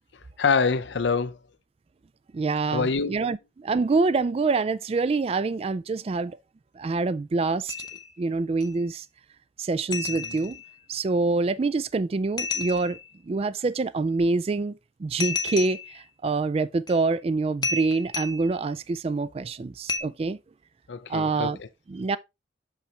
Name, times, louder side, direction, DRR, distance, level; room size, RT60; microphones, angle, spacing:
voice 1, 0.4-1.4 2.7-3.2 10.1-10.4 20.9-21.7, left 5 dB, 75° left, 0.6 m, -26 dB
voice 2, 2.3-6.4 6.8-7.7 8.2-9.0 9.6-10.6 10.9-13.0 13.3-14.7 15.0-20.4 21.1-21.6 21.9-22.2, right 3 dB, 35° right, 0.3 m, -26 dB
sound 1, 7.7-8.2 8.6-8.7 9.9-10.7 12.4-13.1 15.2-16.0 16.9-17.0 17.6-18.6 19.9-20.0, left 3 dB, 25° left, 0.7 m, -31 dB
6.2 x 5.5 x 3.2 m
head